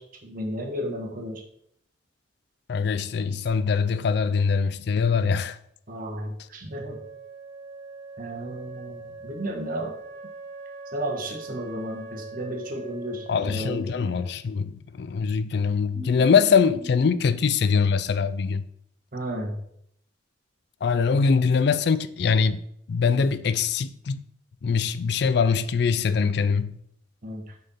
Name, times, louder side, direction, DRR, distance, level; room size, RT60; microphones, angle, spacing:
voice 1, 0.0-1.4 5.9-7.0 8.2-9.9 10.9-13.8 15.9-16.3 19.1-19.6 27.2-27.5, right 1 dB, 50° right, 1.4 m, -33 dB
voice 2, 2.7-5.6 13.3-18.6 20.8-22.6 22.9-24.2 24.6-26.7, left 5 dB, 60° left, 0.4 m, -23 dB
Wind instrument woodwind instrument, 6.7-14.4, right 3 dB, 70° right, 0.9 m, -42 dB
6.3 x 4.5 x 5.5 m
head